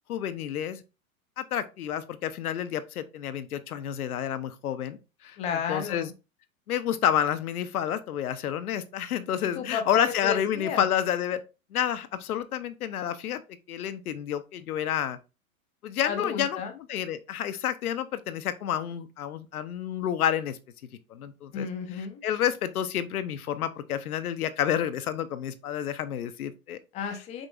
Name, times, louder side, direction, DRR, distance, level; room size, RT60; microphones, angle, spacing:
voice 1, 0.1-0.8 1.4-5.4 5.7-6.1 6.7-11.4 11.7-13.4 13.7-15.2 15.8-20.6 21.1-21.7 22.2-26.8, left 10 dB, 85° left, 0.6 m, -29 dB
voice 2, 5.4-6.1 9.5-10.8 16.0-16.7 21.5-22.2 26.9-27.5, left 6 dB, 15° left, 0.3 m, -32 dB
5.2 x 2.9 x 2.3 m
hypercardioid pair, 110°, 43 cm